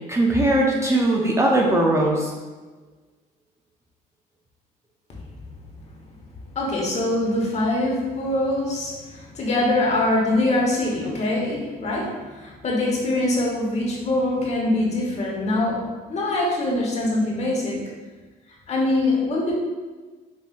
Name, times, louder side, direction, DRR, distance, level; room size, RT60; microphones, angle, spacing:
voice 1, 0.1-2.3, right 1 dB, 15° right, -2 dB, 0.5 m, -19 dB
voice 2, 6.5-17.9 18.7-19.5, left 2 dB, 40° left, -3 dB, 1.2 m, -23 dB
5.5 x 2.6 x 2.4 m, 1.3 s
cardioid pair, 110°, 17 cm